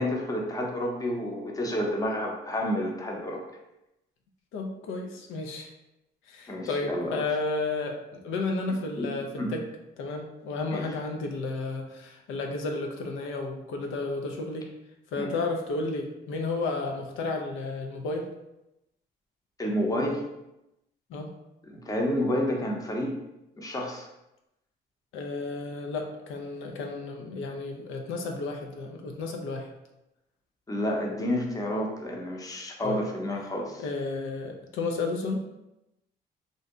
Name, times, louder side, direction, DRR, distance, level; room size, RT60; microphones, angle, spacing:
voice 1, 0.0-3.4 6.5-7.2 9.0-9.5 10.7-10.8 15.2-15.3 19.6-20.2 21.7-23.2 23.6-24.1 30.7-33.8, left 1 dB, 20° left, 0 dB, 0.6 m, -30 dB
voice 2, 4.5-5.7 6.3-9.6 10.0-14.7 15.1-18.3 21.1-21.3 25.1-29.7 32.8-33.0 33.8-35.4, left 3 dB, 85° left, 3 dB, 0.4 m, -32 dB
2.6 x 2.1 x 3.6 m, 0.92 s
cardioid pair, 90°, 20 cm